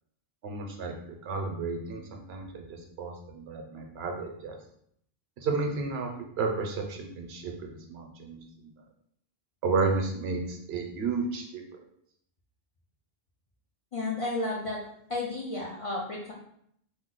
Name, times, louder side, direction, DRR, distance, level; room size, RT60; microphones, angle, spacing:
voice 1, 0.4-0.9 1.2-4.6 5.4-6.1 6.4-8.4 8.6-8.7 9.6-11.6, right 4 dB, 80° right, 2 dB, 0.9 m, -32 dB
voice 2, 13.9-14.8 15.1-16.3, left 2 dB, 55° left, -4 dB, 0.4 m, -32 dB
2.7 x 2.0 x 3.7 m, 0.69 s
omnidirectional pair, 1.0 m